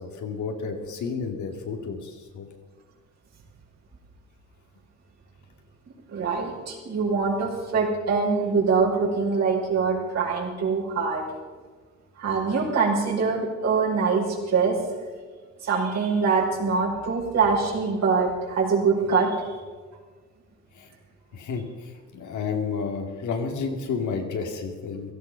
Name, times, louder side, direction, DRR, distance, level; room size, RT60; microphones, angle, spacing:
voice 1, 0.0-2.5 20.8-20.9 21.3-21.6 22.1-25.1, left 5 dB, 75° left, 3 dB, 2.6 m, -31 dB
voice 2, 6.1-11.2 12.2-14.7 15.6-19.4, right 5 dB, 60° right, -3 dB, 5.2 m, -24 dB
16.5 x 13.5 x 5.9 m, 1.4 s
cardioid pair, 90°, 30 cm